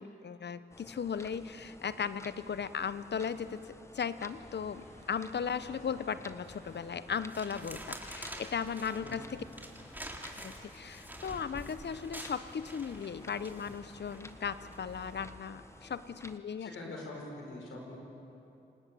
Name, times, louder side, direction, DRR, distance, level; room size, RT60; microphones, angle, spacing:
voice 1, 0.0-9.4 10.3-16.7, left 6 dB, 60° left, 14 dB, 0.9 m, -37 dB
sound 1, 0.7-16.4, left 1 dB, 15° left, 1.5 m, -54 dB
sound 2, 4.3-15.4, left 1 dB, 35° left, 6.9 m, -57 dB
sound 3, 6.5-6.8 7.3-14.2 14.7-14.9, right 1 dB, 10° right, 3.6 m, -47 dB
voice 2, 16.6-18.0, left 2 dB, 80° left, 0 dB, 4.9 m, -44 dB
28.0 x 19.0 x 7.8 m, 2.9 s
supercardioid pair, 40°, 20 cm